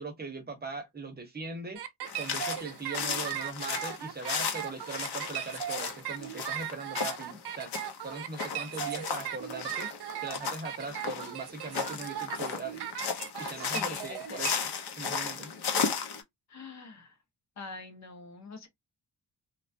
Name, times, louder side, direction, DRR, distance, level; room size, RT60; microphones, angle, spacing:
voice 1, 0.0-1.8 2.2-7.7 8.0-9.9 10.2-12.8 13.4-14.7 15.0-15.5, right 3 dB, 25° right, 0.6 m, -40 dB
sound 1, 1.8-14.5, right 10 dB, 80° right, 0.6 m, -38 dB
sound 2, 2.1-16.2, left 6 dB, 80° left, 0.8 m, -35 dB
voice 2, 13.6-14.5 16.5-17.2 17.6-18.7, left 4 dB, 45° left, 0.7 m, -44 dB
3.1 x 2.3 x 2.5 m
wide cardioid pair, 155°, 39 cm